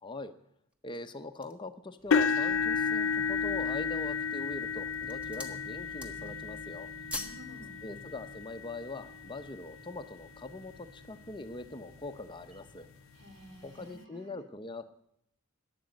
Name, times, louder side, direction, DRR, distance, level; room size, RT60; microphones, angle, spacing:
voice 1, 0.0-0.3 0.8-6.9 7.8-12.9 13.6-14.8, left 2 dB, 20° left, 9 dB, 0.7 m, -42 dB
sound 1, 0.7-1.7 2.3-2.4 2.9-3.4 4.1-4.5 4.8-5.6 5.9-6.4 6.7-7.5 7.8-7.9, left 1 dB, 5° right, 1.2 m, -43 dB
sound 2, 2.0-13.9, right 1 dB, 30° right, 5.5 m, -53 dB
sound 3, 2.1-10.1 10.8-11.0 11.4-11.5 12.9-13.0, left 5 dB, 60° left, 0.4 m, -32 dB
voice 2, 7.1-7.8 13.1-14.4, equal, 55° right, 4 dB, 3.2 m, -52 dB
15.0 x 10.5 x 5.2 m, 0.73 s
head